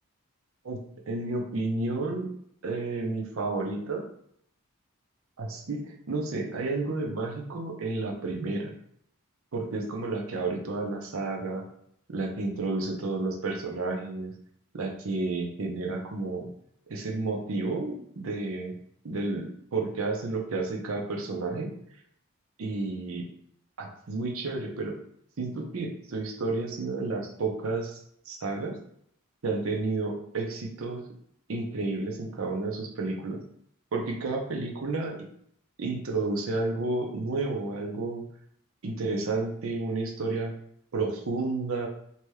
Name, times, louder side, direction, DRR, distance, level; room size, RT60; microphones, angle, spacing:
voice 1, 1.1-2.3 2.6-4.0 5.4-8.7 9.5-11.7 12.1-14.3 14.7-16.5 16.9-18.7 19.0-21.7 22.6-23.3 23.8-24.9 25.4-28.0 28.3-28.8 29.4-31.0 31.5-33.4 33.9-35.2 35.8-38.2 38.8-40.5 40.9-41.9, right 3 dB, 75° right, 2 dB, 0.6 m, -31 dB
2.8 x 2.2 x 3.2 m, 0.68 s
head